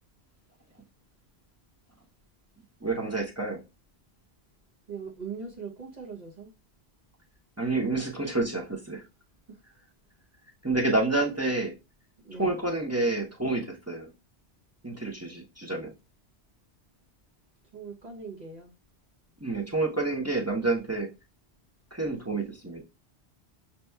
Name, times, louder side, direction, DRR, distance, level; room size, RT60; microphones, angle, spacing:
voice 1, 2.8-3.6 7.6-9.0 10.6-11.7 12.3-14.1 14.8-15.9 19.4-21.1 21.9-22.8, right 2 dB, 15° right, 0.7 m, -28 dB
voice 2, 4.9-6.5 9.5-9.6 11.1-11.3 12.2-12.8 17.7-18.7, right 5 dB, 45° right, 1.0 m, -41 dB
6.6 x 2.9 x 2.2 m
omnidirectional pair, 1.1 m